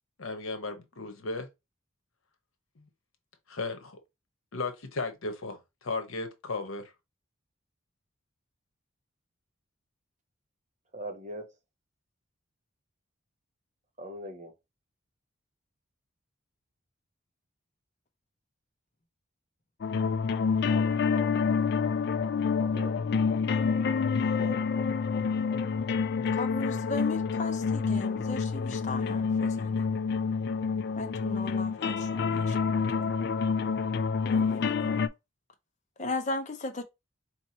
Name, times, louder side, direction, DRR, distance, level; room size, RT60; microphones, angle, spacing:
voice 1, 0.2-1.5 2.8-2.9 3.5-4.0 4.5-6.9, left 3 dB, 85° left, 1.0 m, -35 dB
voice 2, 10.9-11.5 14.0-14.5 20.6-21.4 22.6-23.0 24.3-24.9, right 1 dB, 35° right, 0.8 m, -42 dB
sound 1, 19.8-35.1, left 5 dB, 50° left, 0.3 m, -28 dB
voice 3, 26.3-29.8 31.0-33.1 34.3-35.0 36.0-36.8, left 2 dB, 35° left, 0.7 m, -37 dB
4.4 x 2.9 x 2.8 m
head